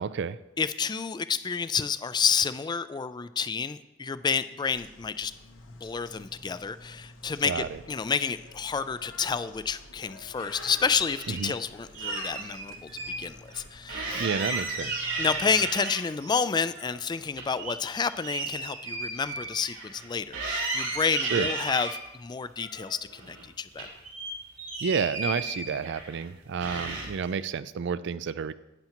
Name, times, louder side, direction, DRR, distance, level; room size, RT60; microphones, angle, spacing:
voice 1, 0.0-0.4 7.4-7.8 11.3-11.5 14.1-15.1 21.3-21.5 24.8-28.5, right 6 dB, 65° right, 15 dB, 0.4 m, -30 dB
voice 2, 0.6-5.3 5.8-14.2 15.2-23.9, left 6 dB, 20° left, 14 dB, 0.3 m, -30 dB
Bird, 4.7-15.7, left 3 dB, 80° left, 1.2 m, -48 dB
sound 1, 10.5-11.5 11.9-13.2 13.5-13.6 13.9-16.3 16.7-20.1 20.3-22.0 22.6-23.4 23.7-26.2 26.6-27.3, right 2 dB, 80° right, 3.2 m, -34 dB
11.5 x 9.0 x 3.0 m, 1.0 s
head